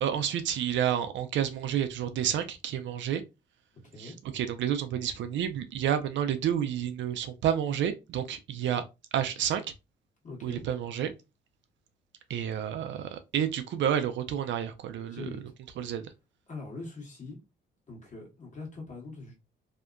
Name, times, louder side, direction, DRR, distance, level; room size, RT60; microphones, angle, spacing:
voice 1, 0.0-3.2 4.0-8.8 9.1-9.6 10.4-11.1 12.3-15.3 15.8-16.0, right 9 dB, 70° right, 0.4 m, -30 dB
voice 2, 3.7-4.2 10.2-10.6 15.1-15.4 16.5-17.4 17.9-19.4, left 3 dB, 40° left, 1.4 m, -42 dB
2.8 x 2.1 x 2.4 m
cardioid pair, 90°, 20 cm